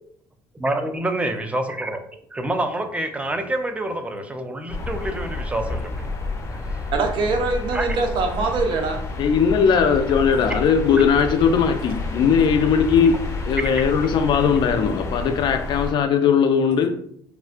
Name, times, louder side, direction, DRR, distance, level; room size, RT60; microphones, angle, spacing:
voice 1, 0.6-2.0 2.3-6.1 6.5-6.9 7.7-8.0 12.9-13.1 13.6-13.9, right 1 dB, 15° right, 6 dB, 0.4 m, -27 dB
sound 1, 4.7-15.9, left 3 dB, 30° left, 0.8 m, -30 dB
voice 2, 6.9-9.0, right 4 dB, 60° right, 3 dB, 0.6 m, -23 dB
voice 3, 9.2-13.2 13.4-16.9, left 6 dB, 55° left, 7 dB, 0.4 m, -19 dB
3.5 x 2.1 x 2.4 m, 0.65 s
supercardioid pair, 90°, 9 cm